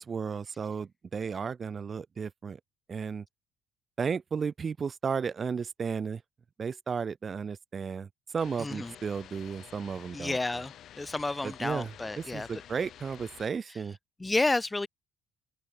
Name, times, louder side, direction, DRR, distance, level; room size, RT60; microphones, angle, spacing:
voice 1, 0.0-2.6 2.9-3.2 4.0-6.2 6.6-10.6 11.4-14.0, right 6 dB, 40° right, 0.5 m, -34 dB
sound 1, 8.4-13.5, left 11 dB, 65° left, 1.5 m, -50 dB
voice 2, 8.6-8.9 10.1-12.5 14.2-14.9, left 2 dB, 15° left, 0.4 m, -30 dB
open air
cardioid pair, 90°, 0 cm